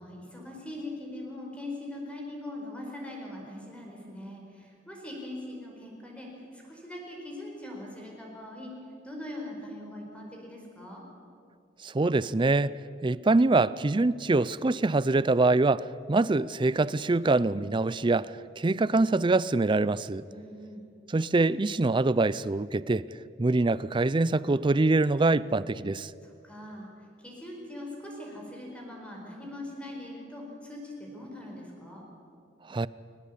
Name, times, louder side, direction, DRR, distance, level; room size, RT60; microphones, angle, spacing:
voice 1, 0.0-8.7 9.0-11.0 20.3-20.8 26.2-26.9 27.2-32.0, left 1 dB, 5° left, 4.8 m, -41 dB
voice 2, 11.8-12.7 13.0-20.2 21.1-23.1 23.4-26.1 32.7-32.9, right 3 dB, 25° right, 0.4 m, -24 dB
21.5 x 20.0 x 8.4 m
head